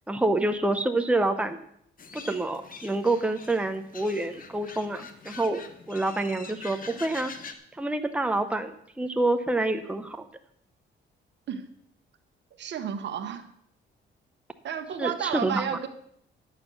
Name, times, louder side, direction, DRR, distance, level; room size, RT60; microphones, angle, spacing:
voice 1, 0.1-1.6 2.1-5.6 5.9-7.3 7.8-10.3 15.0-15.6, right 2 dB, 5° right, 6 dB, 0.9 m, -27 dB
sound 1, 2.0-7.5, left 4 dB, 45° left, 1.3 m, -44 dB
voice 2, 12.6-13.4 14.6-15.9, right 8 dB, 65° right, 8 dB, 1.3 m, -32 dB
10.5 x 7.3 x 6.3 m, 0.69 s
cardioid pair, 90°, 20 cm